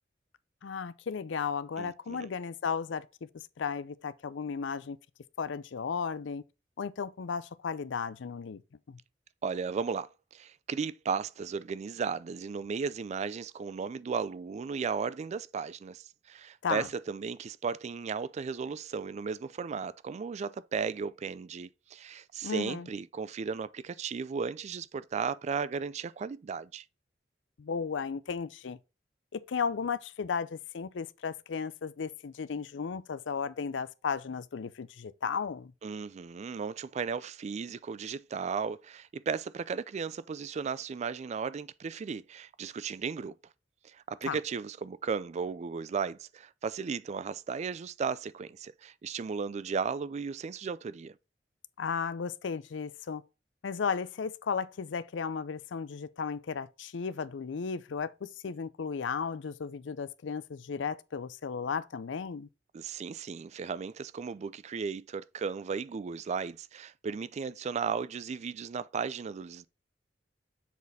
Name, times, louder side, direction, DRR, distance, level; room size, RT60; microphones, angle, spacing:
voice 1, 0.6-3.3 3.6-5.0 5.4-6.4 6.8-8.6 8.9-9.0 16.6-16.9 22.4-22.9 27.6-28.8 29.3-35.7 44.2-44.4 51.8-53.2 53.6-62.5, left 6 dB, 80° left, 0.5 m, -35 dB
voice 2, 1.8-2.3 9.4-26.8 35.8-43.3 43.8-51.2 62.7-69.7, right 5 dB, 40° right, 0.3 m, -35 dB
7.2 x 4.1 x 4.1 m
head